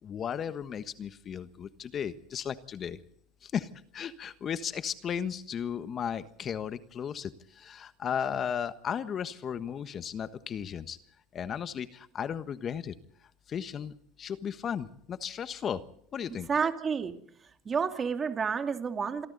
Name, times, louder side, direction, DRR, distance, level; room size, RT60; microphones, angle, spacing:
voice 1, 0.0-3.0 3.4-11.0 11.3-13.0 13.5-15.9 16.1-16.5, left 8 dB, 40° left, 12 dB, 1.3 m, -35 dB
voice 2, 16.5-17.2 17.6-19.3, right 6 dB, 30° right, 6 dB, 2.6 m, -30 dB
28.0 x 22.5 x 4.1 m, 0.65 s
hypercardioid pair, 90°, 0 cm